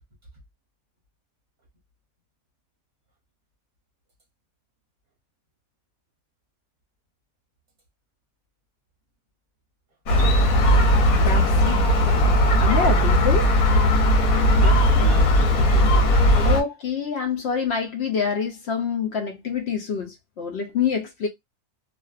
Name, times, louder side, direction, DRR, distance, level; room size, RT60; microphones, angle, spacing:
Gull seagull, 10.1-16.6, equal, 85° left, 1.1 m, -18 dB
voice 1, 11.1-11.8 12.2-13.5 16.4-21.3, left 6 dB, 65° left, 0.7 m, -26 dB
voice 2, 14.6-16.6, right 2 dB, 45° right, 0.8 m, -36 dB
2.5 x 2.2 x 2.3 m
omnidirectional pair, 1.5 m